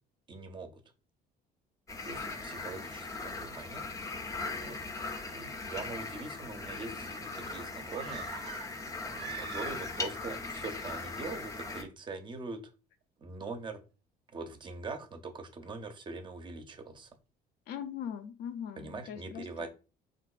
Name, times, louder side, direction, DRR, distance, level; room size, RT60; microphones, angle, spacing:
voice 1, 0.3-0.8 2.0-8.7 9.0-12.6 13.2-13.8 14.3-17.1 18.8-19.7, right 3 dB, 30° right, 0.5 m, -43 dB
sound 1, 1.9-11.8, left 3 dB, 20° left, 0.5 m, -39 dB
sound 2, 7.9-10.1 10.4-10.5, right 9 dB, 80° right, 0.5 m, -44 dB
voice 2, 17.7-19.7, left 8 dB, 70° left, 0.5 m, -40 dB
3.5 x 2.5 x 2.3 m
cardioid pair, 110°, 17 cm